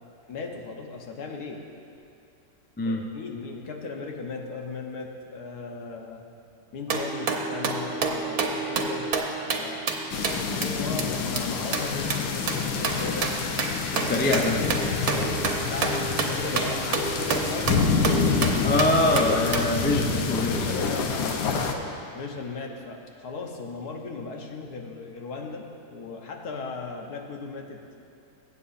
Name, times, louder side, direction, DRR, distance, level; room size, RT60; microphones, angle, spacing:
voice 1, 0.3-1.7 2.8-6.2 6.7-9.9 10.3-13.4 14.0-14.2 15.7-18.4 20.5-21.5 22.1-27.9, left 4 dB, 70° left, 2 dB, 1.5 m, -37 dB
sound 1, 6.9-10.6 11.0-11.1 11.4-11.5 11.7-19.7, right 4 dB, 65° right, 1.3 m, -29 dB
sound 2, 10.1-21.7, left 5 dB, 85° left, 1.4 m, -28 dB
voice 2, 13.9-14.6 16.7-16.8 18.6-20.9, left 1 dB, 15° left, 1 dB, 0.3 m, -24 dB
22.5 x 8.4 x 2.6 m, 2.6 s
omnidirectional pair, 1.7 m